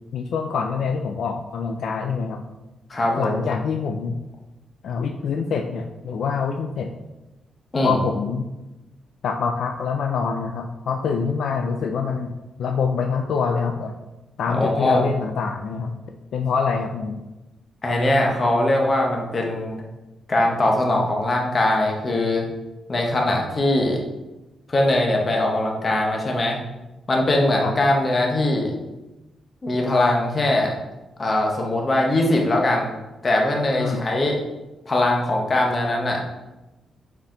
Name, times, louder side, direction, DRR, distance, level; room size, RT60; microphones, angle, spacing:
voice 1, 0.1-2.4 3.2-4.2 4.8-6.9 7.8-8.5 9.2-12.3 12.6-13.9 14.4-15.9 16.3-17.2 27.6-27.7 33.8-34.0, left 5 dB, 60° left, 4 dB, 0.4 m, -25 dB
voice 2, 2.9-3.5 7.7-8.0 14.5-15.0 17.8-19.8 20.3-22.4 22.9-24.0 24.7-26.6 27.1-28.7 29.6-30.7 31.2-32.9 33.2-34.4 34.9-36.4, left 1 dB, 25° left, 0 dB, 1.0 m, -21 dB
7.0 x 4.3 x 3.9 m, 1.0 s
wide cardioid pair, 175°, 0 cm